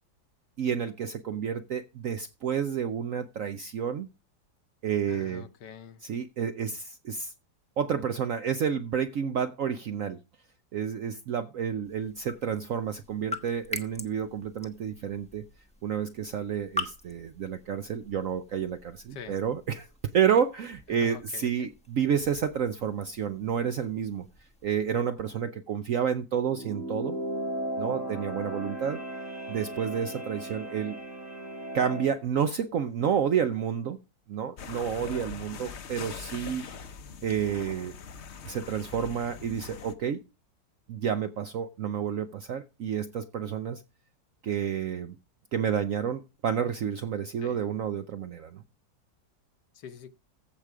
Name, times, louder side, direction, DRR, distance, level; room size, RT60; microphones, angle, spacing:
voice 1, 0.6-4.1 4.8-5.4 6.0-7.3 7.8-10.2 10.7-15.4 15.8-19.9 20.1-24.3 24.6-27.2 27.8-29.0 29.5-31.0 31.7-34.0 34.3-36.7 37.2-37.9 38.4-40.2 40.9-43.8 44.4-45.2 45.5-48.6, right 8 dB, 65° right, 0.8 m, -30 dB
voice 2, 5.1-6.0 19.1-19.5 20.9-21.7 35.0-35.3 47.4-47.7 49.7-50.1, left 8 dB, 70° left, 1.4 m, -45 dB
sound 1, 11.8-25.0, left 2 dB, 5° left, 0.5 m, -44 dB
sound 2, 26.4-32.2, right 1 dB, 10° right, 1.3 m, -36 dB
sound 3, 34.6-39.9, left 6 dB, 50° left, 0.8 m, -42 dB
15.0 x 5.0 x 4.7 m
omnidirectional pair, 2.0 m